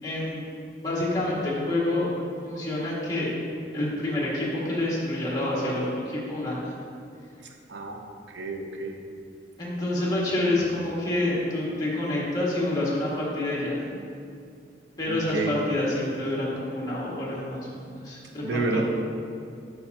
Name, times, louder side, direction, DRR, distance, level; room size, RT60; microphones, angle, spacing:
voice 1, 0.0-0.4 0.8-2.1 2.4-3.3 3.7-6.7 9.6-13.8 15.0-18.8, left 1 dB, 20° left, -6 dB, 1.8 m, -28 dB
voice 2, 7.7-8.9 15.1-15.5 18.4-18.8, right 3 dB, 85° right, 3 dB, 0.7 m, -30 dB
9.9 x 5.5 x 2.8 m, 2.4 s
head